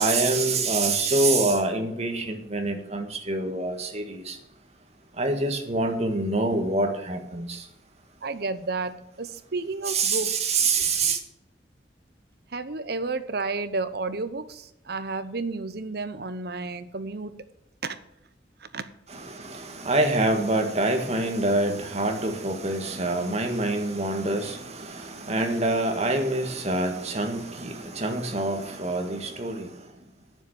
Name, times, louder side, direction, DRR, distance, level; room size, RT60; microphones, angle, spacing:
voice 1, 0.0-4.4 5.2-7.6 9.9-11.2 19.1-29.7, right 2 dB, 40° right, 1.7 m, -26 dB
voice 2, 8.2-10.3 12.5-17.4 17.8-18.0 18.6-18.9, right 3 dB, 60° right, 0.9 m, -31 dB
9.6 x 7.1 x 7.2 m
head